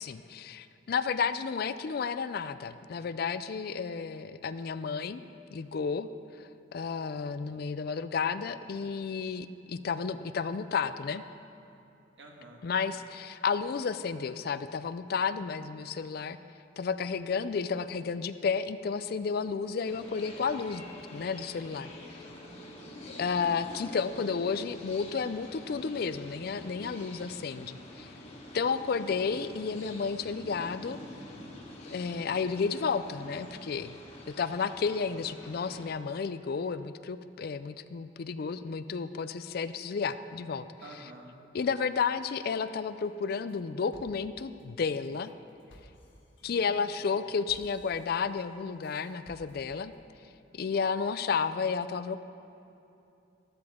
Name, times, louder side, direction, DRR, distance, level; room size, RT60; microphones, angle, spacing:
voice 1, 0.0-5.2 5.5-6.1 6.4-11.2 12.6-16.4 16.8-20.9 21.1-21.9 23.1-28.1 28.5-31.0 31.9-34.0 34.3-40.6 41.5-45.3 46.4-49.9 50.5-52.2, left 5 dB, 55° left, 13 dB, 0.4 m, -32 dB
voice 2, 12.2-12.6 22.0-22.8 27.2-27.8 40.8-41.4 46.4-46.8, right 1 dB, 75° right, 0 dB, 1.7 m, -51 dB
sound 1, 19.9-35.9, left 1 dB, 35° left, 1.6 m, -47 dB
sound 2, 43.0-43.6 43.9-50.0, equal, 90° left, 1.5 m, -58 dB
13.5 x 12.5 x 3.6 m, 2.8 s
head